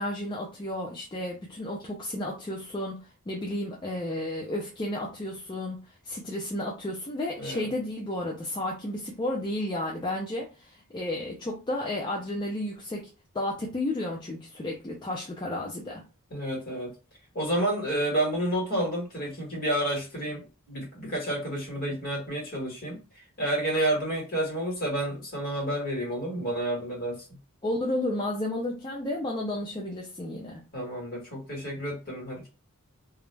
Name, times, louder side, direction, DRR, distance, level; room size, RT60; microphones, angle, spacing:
voice 1, 0.0-5.8 6.0-13.1 13.3-16.0 27.6-30.6, left 1 dB, 20° left, -2 dB, 0.4 m, -32 dB
voice 2, 7.4-7.7 16.3-16.9 17.3-20.4 20.7-23.0 23.4-27.2 30.7-32.5, right 1 dB, 40° left, -2 dB, 1.2 m, -30 dB
2.3 x 2.0 x 3.2 m, 0.31 s
head